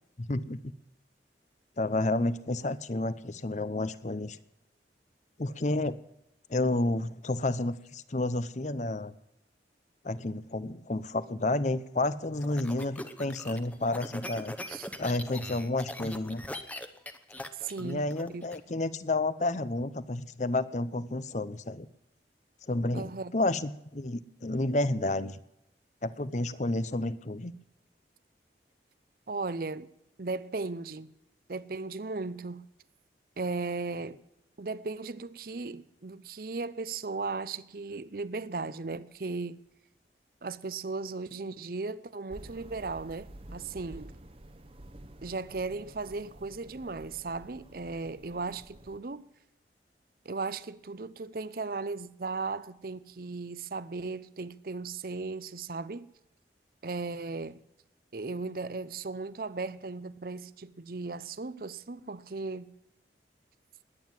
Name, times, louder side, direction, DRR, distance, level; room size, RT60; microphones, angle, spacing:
voice 1, 0.2-0.6 1.8-4.4 5.4-6.0 6.5-9.1 10.0-14.5 15.0-16.4 17.8-21.9 22.7-25.4 26.0-27.5, left 2 dB, 40° left, 0.7 m, -30 dB
sound 1, 12.0-18.6, left 1 dB, 10° left, 0.9 m, -41 dB
voice 2, 17.5-18.5 22.9-23.3 29.3-29.9 30.2-31.1 31.5-32.6 33.4-34.2 34.6-39.6 40.4-44.2 45.2-49.2 50.2-56.1 56.8-57.6 58.1-62.7, right 3 dB, 55° right, 0.6 m, -36 dB
sound 2, 42.3-49.0, right 1 dB, 30° right, 0.9 m, -50 dB
20.5 x 9.3 x 7.5 m
head